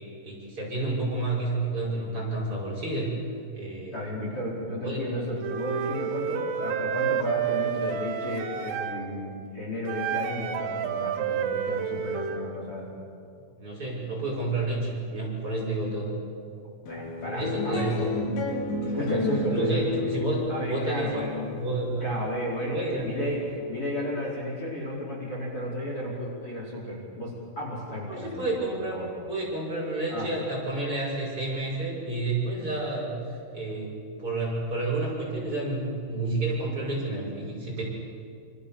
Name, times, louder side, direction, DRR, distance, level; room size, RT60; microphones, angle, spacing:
voice 1, 0.2-3.1 3.5-4.1 4.8-5.1 13.6-16.1 17.2-18.2 18.9-19.1 19.5-22.1 22.6-23.1 28.1-29.0 29.3-37.8, right 2 dB, 25° right, -4 dB, 6.0 m, -30 dB
voice 2, 3.9-12.9 16.9-17.9 18.9-19.9 20.5-21.6 22.0-28.4 28.9-29.1 30.1-30.3, left 1 dB, 30° left, -4 dB, 5.1 m, -33 dB
Wind instrument woodwind instrument, 5.4-9.0 9.9-12.4, right 8 dB, 85° right, 4.4 m, -30 dB
sound 1, 16.9-23.5, left 2 dB, 85° left, 5.7 m, -31 dB
27.5 x 27.5 x 7.1 m, 2.4 s
omnidirectional pair, 5.8 m